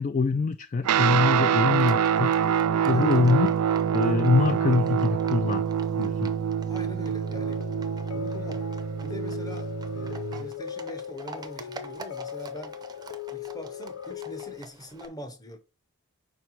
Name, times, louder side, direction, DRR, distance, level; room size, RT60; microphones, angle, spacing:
voice 1, 0.0-3.5 3.9-5.6 6.0-6.3, left 4 dB, 35° left, 0.3 m, -24 dB
Guitar, 0.8-10.5, right 8 dB, 85° right, 0.4 m, -26 dB
Livestock farm animals working animals, 1.7-15.1, right 3 dB, 20° right, 0.6 m, -47 dB
voice 2, 6.7-7.7 8.1-8.7 9.0-12.8 13.3-15.6, equal, 15° left, 0.9 m, -43 dB
sound 1, 7.2-14.6, left 9 dB, 80° left, 0.7 m, -38 dB
5.6 x 5.1 x 4.6 m
head